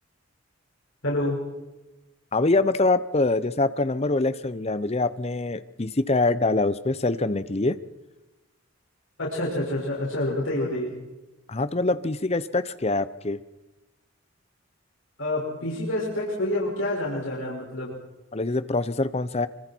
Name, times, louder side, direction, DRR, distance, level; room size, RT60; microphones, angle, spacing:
voice 1, 1.0-1.4 9.2-10.9 15.2-17.9, left 1 dB, 80° left, -5 dB, 6.0 m, -27 dB
voice 2, 2.3-7.8 11.5-13.4 18.3-19.5, left 2 dB, 30° left, 14 dB, 0.8 m, -24 dB
26.5 x 25.0 x 4.6 m, 1.1 s
head